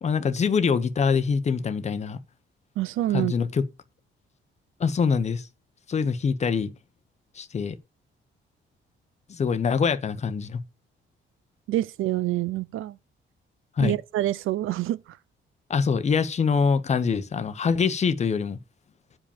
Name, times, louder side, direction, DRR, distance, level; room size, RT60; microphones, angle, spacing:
voice 1, 0.0-2.2 3.1-3.6 4.8-5.5 5.9-6.7 7.3-7.8 9.3-10.6 13.8-13.9 15.7-18.6, left 5 dB, 35° left, 0.9 m, -24 dB
voice 2, 2.8-3.3 11.7-13.0 13.8-15.2, right 14 dB, 80° right, 0.6 m, -27 dB
8.6 x 5.1 x 7.2 m
cardioid pair, 135°, 21 cm